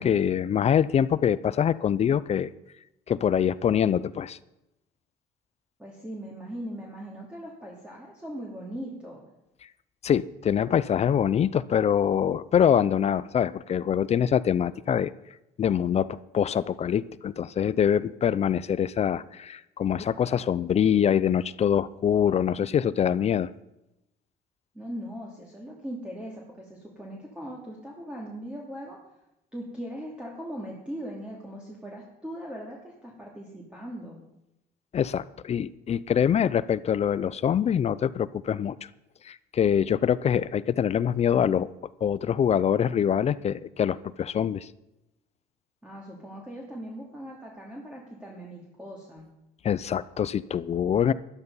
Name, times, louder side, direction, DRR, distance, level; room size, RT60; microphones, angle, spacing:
voice 1, 0.0-2.5 3.1-4.4 10.0-15.1 15.6-23.5 34.9-38.8 39.2-41.7 42.0-44.7 49.6-51.1, left 8 dB, 40° left, 17 dB, 0.5 m, -24 dB
voice 2, 5.8-9.2 24.7-29.0 29.5-34.2 45.8-49.2, equal, 5° right, -3 dB, 2.6 m, -39 dB
12.0 x 12.0 x 5.5 m, 0.89 s
cardioid pair, 110°, 17 cm